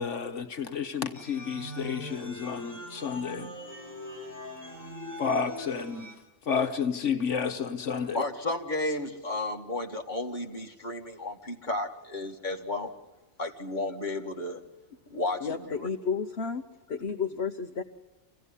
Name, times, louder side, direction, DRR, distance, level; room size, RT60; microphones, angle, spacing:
voice 1, 0.0-3.5 5.2-6.1 6.5-8.2, left 6 dB, 85° left, 7 dB, 1.6 m, -31 dB
sound 1, 1.1-6.1, left 1 dB, 15° left, 5.8 m, -41 dB
voice 2, 8.1-12.9 13.4-14.6 15.1-15.9, left 2 dB, 40° left, 2 dB, 2.3 m, -33 dB
voice 3, 15.4-16.6 16.9-17.8, left 5 dB, 60° left, 5 dB, 1.3 m, -31 dB
26.0 x 16.5 x 9.9 m, 1.1 s
omnidirectional pair, 1.2 m